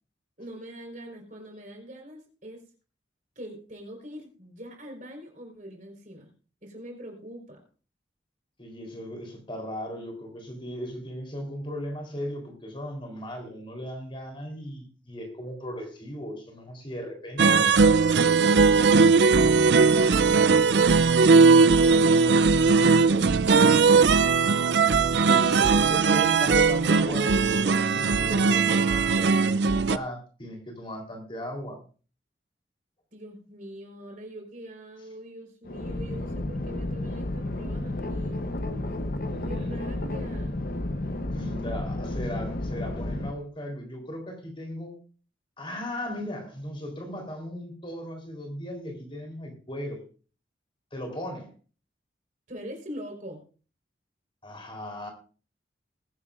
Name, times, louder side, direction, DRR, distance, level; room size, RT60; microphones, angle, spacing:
voice 1, 0.4-2.6 3.4-6.3 6.6-7.6 19.2-24.4 33.1-38.4 39.4-40.6 52.5-53.4, equal, 45° right, 2 dB, 4.3 m, -43 dB
voice 2, 8.6-17.4 25.3-31.8 39.3-39.7 41.3-45.0 45.6-50.0 50.9-51.5 54.4-55.1, equal, 30° left, 3 dB, 3.6 m, -37 dB
sound 1, 17.4-30.0, right 4 dB, 70° right, 0.5 m, -19 dB
sound 2, 35.6-43.3, left 1 dB, 50° left, 0.9 m, -32 dB
20.5 x 11.0 x 2.5 m, 0.37 s
head